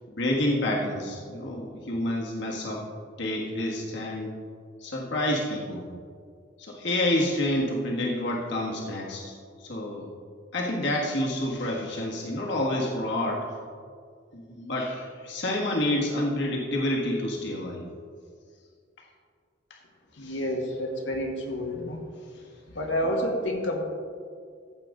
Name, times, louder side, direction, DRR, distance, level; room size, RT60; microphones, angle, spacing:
voice 1, 0.2-2.8 3.2-4.4 4.8-5.9 6.6-9.3 9.6-10.1 10.5-13.5 14.3-17.8 20.2-20.4, left 1 dB, 65° left, -2 dB, 1.6 m, -28 dB
voice 2, 20.1-22.0 22.7-23.8, equal, 90° left, 1 dB, 1.8 m, -29 dB
15.0 x 7.6 x 3.8 m, 2.1 s
head